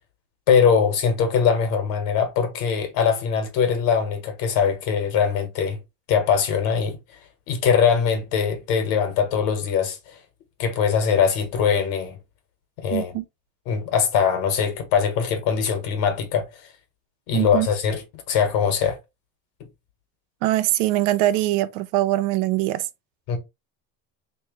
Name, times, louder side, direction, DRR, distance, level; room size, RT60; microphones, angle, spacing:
voice 1, 0.5-5.8 6.1-7.0 7.5-10.2 10.6-12.2 12.8-13.1 13.7-16.4 17.3-19.0 23.3-23.4, left 7 dB, 70° left, 1.4 m, -22 dB
voice 2, 12.9-13.2 17.3-17.7 20.4-22.9, right 15 dB, 80° right, 0.6 m, -22 dB
3.5 x 3.1 x 3.2 m
cardioid pair, 160°, 36 cm